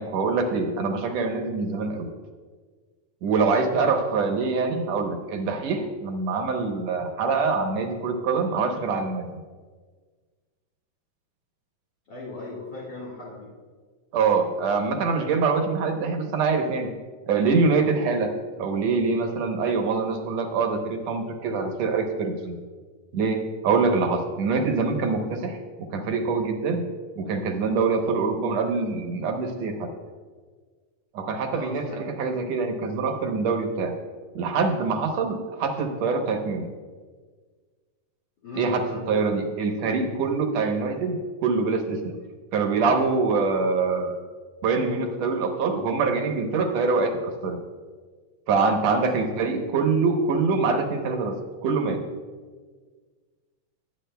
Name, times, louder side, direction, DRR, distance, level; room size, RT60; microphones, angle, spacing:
voice 1, 0.0-2.1 3.2-9.3 14.1-16.9 17.3-18.3 18.6-22.6 23.1-25.6 25.9-26.8 27.2-29.9 31.1-33.9 34.3-36.7 38.5-42.1 42.5-44.2 44.6-47.6 48.5-52.0, right 4 dB, 70° right, 4 dB, 2.1 m, -24 dB
voice 2, 12.1-13.5 31.5-32.0 38.4-39.0 48.9-49.3, left 2 dB, 40° left, -7 dB, 2.2 m, -38 dB
21.0 x 8.3 x 2.2 m, 1.5 s
omnidirectional pair, 3.3 m